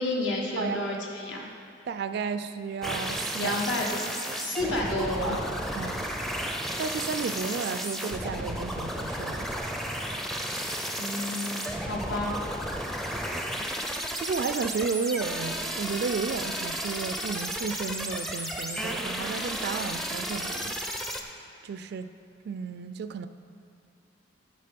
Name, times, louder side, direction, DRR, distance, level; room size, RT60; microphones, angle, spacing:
voice 1, 0.0-1.4 3.4-4.1 4.4-5.4 11.0-12.4, left 1 dB, 75° left, -1 dB, 1.2 m, -30 dB
voice 2, 1.9-3.6 5.3-5.4 5.7-6.1 6.8-9.8 14.1-21.1 21.6-22.2 22.4-23.3, right 5 dB, 55° right, 11 dB, 0.3 m, -33 dB
sound 1, 2.8-21.2, equal, ahead, 0.4 m, -33 dB
12.0 x 5.1 x 5.2 m, 2.6 s
head